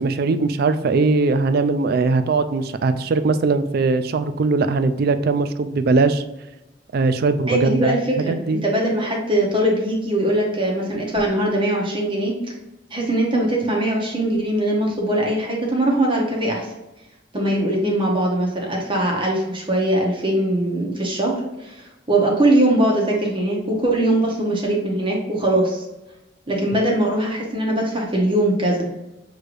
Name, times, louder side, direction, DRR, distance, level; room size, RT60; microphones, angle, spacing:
voice 1, 0.0-6.2 6.9-8.0 8.3-8.6, right 3 dB, 55° right, 11 dB, 0.4 m, -20 dB
voice 2, 7.5-12.3 12.9-16.7 17.3-25.8 26.5-28.9, right 1 dB, 30° right, -2 dB, 0.9 m, -21 dB
6.4 x 3.2 x 2.5 m, 0.97 s
head